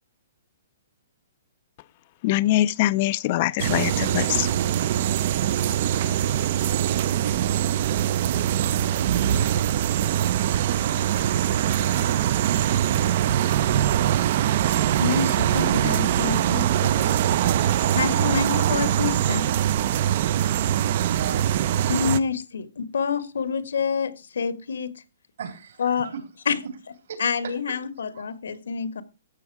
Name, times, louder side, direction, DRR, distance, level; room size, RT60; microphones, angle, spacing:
voice 1, 2.2-4.5, left 15 dB, 35° left, 0.5 m, -23 dB
sound 1, 3.6-22.2, right 11 dB, 45° right, 0.7 m, -23 dB
voice 2, 15.0-17.1 17.9-19.5 21.9-25.0 25.8-26.1 26.4-26.6 27.2-29.0, left 6 dB, 80° left, 1.7 m, -27 dB
voice 3, 21.0-21.7 25.4-26.2 26.6-26.7 27.1-27.8 28.1-28.2, right 7 dB, 65° right, 3.8 m, -37 dB
14.0 x 8.1 x 4.8 m
hypercardioid pair, 160°, 0 cm